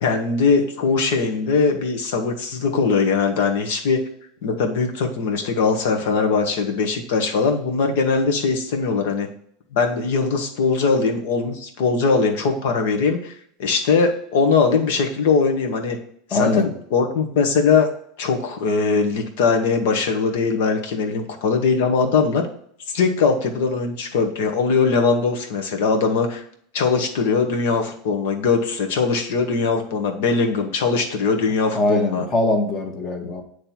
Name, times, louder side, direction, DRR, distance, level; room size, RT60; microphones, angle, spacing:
voice 1, 0.0-4.0 4.4-9.3 9.7-16.0 16.3-17.9 18.2-22.5 22.9-26.4 26.7-32.2, left 4 dB, 75° left, 4 dB, 1.4 m, -21 dB
voice 2, 16.3-16.7 31.7-33.4, left 2 dB, 30° left, 3 dB, 1.3 m, -22 dB
8.9 x 3.3 x 4.4 m, 0.66 s
supercardioid pair, 145°, 0 cm